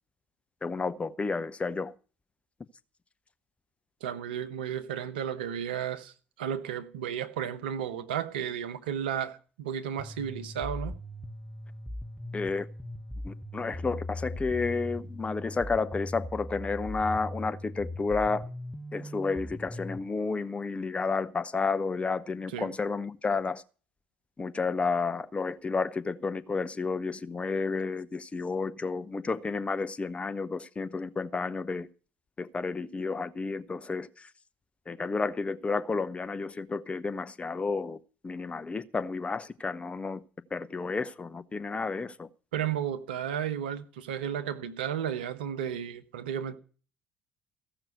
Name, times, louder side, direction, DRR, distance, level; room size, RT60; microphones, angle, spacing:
voice 1, 0.6-1.9 12.3-12.7 13.2-18.5 18.9-23.6 24.4-31.9 32.4-34.3 34.9-40.2 40.5-42.3, left 4 dB, 20° left, 0.7 m, -31 dB
voice 2, 4.0-10.9 22.5-22.7 42.5-46.6, right 9 dB, 75° right, 1.0 m, -33 dB
sound 1, 10.0-20.0, left 1 dB, ahead, 1.2 m, -39 dB
15.5 x 6.0 x 7.9 m
figure-of-eight pair, 55°, 5 cm